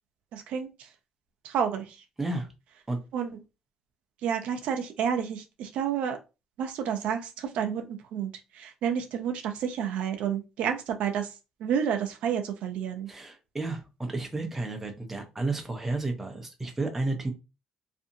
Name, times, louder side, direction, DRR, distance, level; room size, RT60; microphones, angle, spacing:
voice 1, 0.3-0.7 1.4-2.0 3.1-3.4 4.2-6.2 6.6-11.3 11.6-13.1, right 8 dB, 75° right, 0.5 m, -30 dB
voice 2, 2.2-2.5 2.9-3.0 13.1-17.3, right 2 dB, 10° right, 0.6 m, -32 dB
2.7 x 2.6 x 2.6 m
cardioid pair, 145°, 2 cm